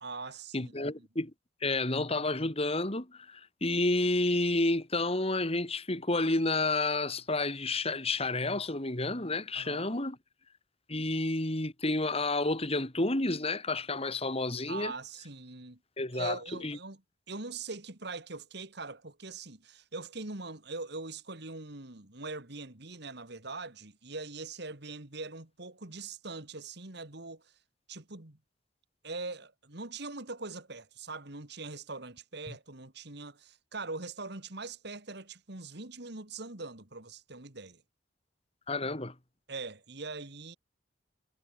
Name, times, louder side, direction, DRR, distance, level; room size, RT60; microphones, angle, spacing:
voice 1, 0.0-1.1 9.5-10.0 14.7-15.8 16.1-17.0 17.3-27.5 27.9-28.4 29.0-37.8 39.5-40.6, right 3 dB, 60° right, 2.5 m, -42 dB
voice 2, 0.5-1.3 1.6-10.2 10.9-14.9 16.0-16.4 16.6-16.8 38.7-39.1, left 2 dB, 30° left, 2.9 m, -30 dB
head